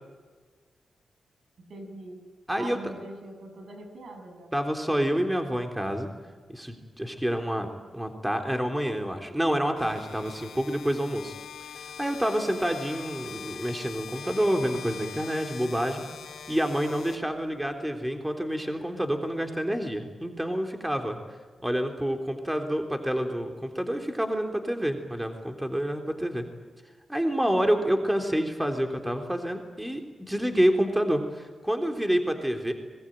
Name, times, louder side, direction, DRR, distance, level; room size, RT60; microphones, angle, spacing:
voice 1, 1.7-2.2 2.5-4.5 27.4-27.8, right 2 dB, 70° right, 5 dB, 7.0 m, -42 dB
voice 2, 2.5-2.9 4.5-6.1 6.5-11.3 11.8-16.1 16.5-21.2 21.6-26.5 27.1-32.7, equal, 10° right, 4 dB, 3.5 m, -28 dB
sound 1, 9.8-17.8, left 7 dB, 80° left, 2.3 m, -43 dB
25.5 x 22.0 x 9.1 m, 1.5 s
cardioid pair, 65°, 0 cm